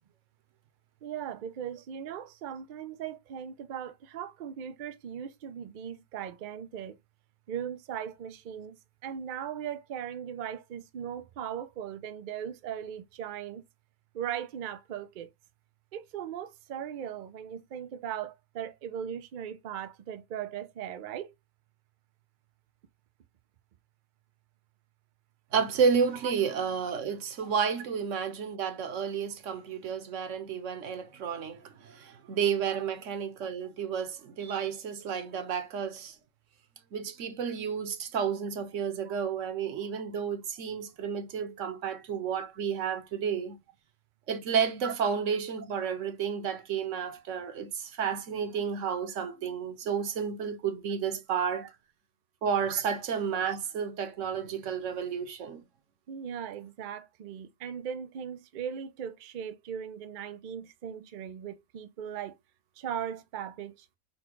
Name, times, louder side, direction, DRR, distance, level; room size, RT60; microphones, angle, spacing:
voice 1, 1.0-7.0 7.5-8.8 9.0-13.6 14.1-15.3 15.9-21.3 26.2-26.3 32.7-32.8 39.1-39.2 44.8-44.9 52.7-52.8 56.1-62.3 62.8-63.9, right 9 dB, 85° right, 0.4 m, -38 dB
voice 2, 25.5-36.2 36.9-43.6 44.3-51.7 52.4-55.6, right 7 dB, 65° right, 1.1 m, -31 dB
4.3 x 2.2 x 4.4 m
omnidirectional pair, 1.5 m